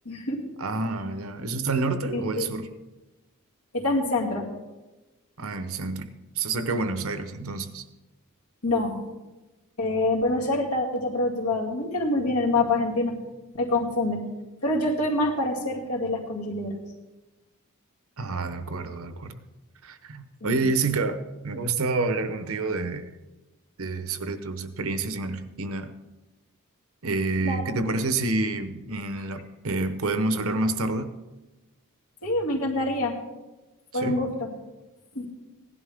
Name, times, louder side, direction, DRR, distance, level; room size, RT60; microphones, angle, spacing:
voice 1, 0.0-0.4 2.1-2.5 3.7-4.5 8.6-9.0 9.8-13.2 13.5-14.2 14.6-16.8 20.4-20.6 27.4-27.8 32.2-33.1 33.9-34.5 35.1-35.3, left 2 dB, 85° left, -1 dB, 2.5 m, -26 dB
voice 2, 0.6-2.7 5.4-6.1 6.4-7.8 18.2-19.4 19.8-23.1 23.8-25.9 27.0-31.1 33.9-34.2, right 3 dB, 65° right, 10 dB, 0.9 m, -28 dB
16.5 x 11.0 x 3.5 m, 1.1 s
head